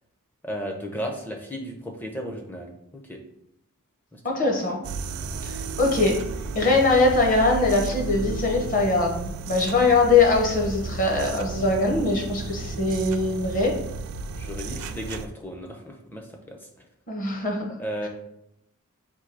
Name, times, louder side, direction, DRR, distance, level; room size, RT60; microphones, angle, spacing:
voice 1, 0.4-3.2 4.1-4.2 14.4-16.7 17.8-18.1, equal, 10° left, 2 dB, 0.5 m, -34 dB
voice 2, 4.2-4.9 5.4-6.2 6.5-13.7 17.1-17.6, left 3 dB, 35° left, 0 dB, 0.9 m, -22 dB
sound 1, 4.8-15.3, right 4 dB, 70° right, 0.3 m, -33 dB
3.6 x 2.7 x 4.6 m, 0.77 s
head